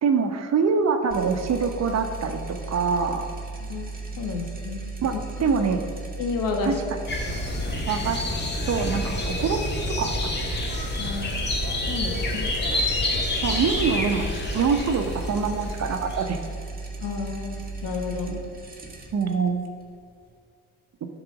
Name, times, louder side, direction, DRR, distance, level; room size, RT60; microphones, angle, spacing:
voice 1, 0.0-3.3 5.0-5.1 5.4-5.8 6.6-6.7 7.9-10.1 12.3-12.5 13.4-14.3 14.5-16.4 19.1-19.6, right 5 dB, 50° right, 7 dB, 0.9 m, -25 dB
sound 1, 1.1-20.4, right 3 dB, 25° right, 1.6 m, -36 dB
voice 2, 3.7-4.8 5.1-5.7 6.2-6.7 11.0-11.4 11.9-12.5 17.0-18.4, left 4 dB, 70° left, 3 dB, 1.4 m, -31 dB
sound 2, 7.1-16.5, left 1 dB, 30° left, 1.8 m, -28 dB
11.5 x 4.0 x 6.0 m, 2.2 s
supercardioid pair, 70°, 35 cm